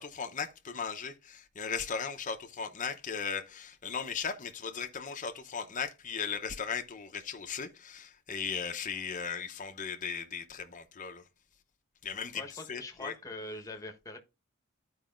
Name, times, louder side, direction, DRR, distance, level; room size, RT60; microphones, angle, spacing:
voice 1, 0.0-11.2 12.0-12.4 12.7-13.1, left 6 dB, 35° left, 0.8 m, -37 dB
voice 2, 12.3-14.2, left 2 dB, 15° left, 1.1 m, -43 dB
13.0 x 4.8 x 2.5 m
head